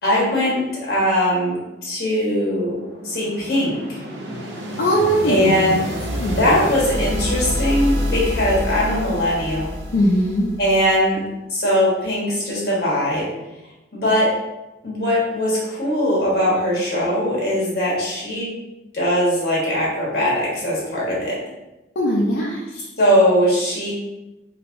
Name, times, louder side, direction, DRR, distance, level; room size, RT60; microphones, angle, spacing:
voice 1, 0.0-1.6 1.8-2.8 3.0-4.0 5.2-5.8 6.4-9.7 10.6-11.2 11.5-13.2 13.9-14.3 14.8-18.5 18.9-21.4 23.0-23.9, equal, 60° left, -6 dB, 1.3 m, -20 dB
sound 1, 2.2-11.0, equal, 75° right, 0.6 m, -28 dB
voice 2, 4.8-5.7 6.2-6.4 9.9-10.5 22.0-22.9, equal, 80° left, -4 dB, 0.5 m, -20 dB
3.2 x 2.9 x 2.6 m, 0.98 s
head